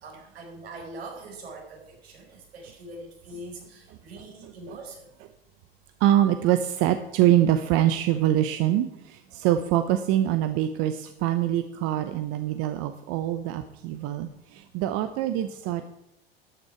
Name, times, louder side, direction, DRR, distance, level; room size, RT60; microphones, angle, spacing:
voice 1, 0.0-5.0, right 2 dB, 80° right, 0 dB, 4.8 m, -42 dB
voice 2, 6.0-15.9, right 12 dB, 50° right, 9 dB, 0.9 m, -24 dB
13.0 x 9.0 x 4.7 m, 0.80 s
hypercardioid pair, 90°, 31 cm